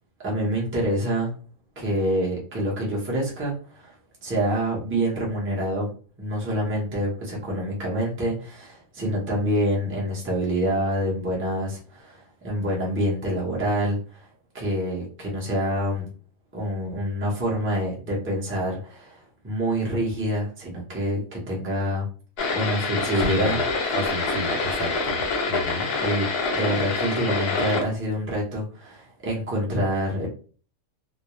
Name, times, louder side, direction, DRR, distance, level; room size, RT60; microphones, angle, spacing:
voice 1, 0.2-1.3 1.8-3.9 4.2-5.9 6.2-14.3 14.5-16.1 16.5-22.1 22.5-23.6 26.0-30.3, equal, 15° right, 0.5 m, -26 dB
sound 1, 22.4-27.8, left 3 dB, 55° left, 0.8 m, -26 dB
voice 2, 23.2-23.6 23.9-26.0, equal, 85° right, 1.0 m, -32 dB
2.3 x 2.1 x 2.9 m
omnidirectional pair, 1.4 m